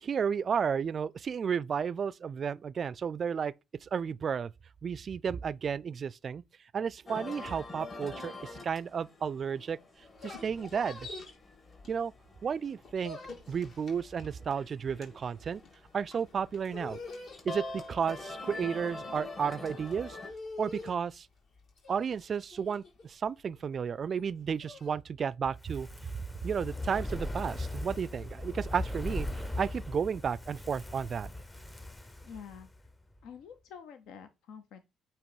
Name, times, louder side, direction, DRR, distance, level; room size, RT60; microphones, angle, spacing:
voice 1, 0.0-3.5 3.8-4.5 4.8-6.4 6.7-9.8 10.2-11.1 11.9-12.1 12.4-13.2 13.5-15.6 15.9-17.0 17.4-20.2 20.6-21.3 21.9-25.9 26.4-31.3, right 7 dB, 50° right, 0.3 m, -33 dB
sound 1, 7.1-20.3, left 2 dB, 40° left, 2.6 m, -45 dB
sound 2, 10.0-12.3 12.6-24.9, left 3 dB, 60° left, 2.4 m, -47 dB
Fire, 25.5-32.9 33.2-33.3, left 1 dB, 20° left, 0.8 m, -39 dB
voice 2, 32.2-32.7 33.2-34.9, left 7 dB, 75° left, 0.6 m, -48 dB
8.9 x 3.0 x 4.7 m
supercardioid pair, 60°, 0 cm